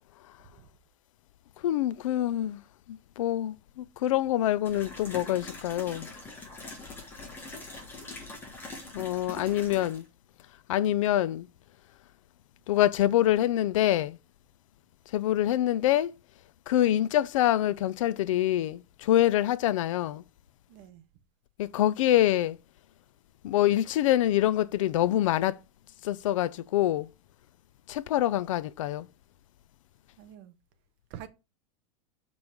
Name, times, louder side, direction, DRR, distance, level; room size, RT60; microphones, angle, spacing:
voice 1, 1.6-2.6 2.9-6.1 8.9-10.0 10.7-11.5 12.7-14.2 15.1-16.1 16.7-20.2 21.6-22.6 23.4-25.6 26.0-27.1 27.9-29.1, left 13 dB, 65° left, 0.5 m, -25 dB
sound 1, 4.7-10.0, left 3 dB, 10° left, 1.4 m, -43 dB
voice 2, 9.3-9.9 20.7-21.0 30.2-30.5 31.1-31.3, right 11 dB, 35° right, 0.8 m, -47 dB
6.8 x 5.3 x 4.6 m
supercardioid pair, 175°, 18 cm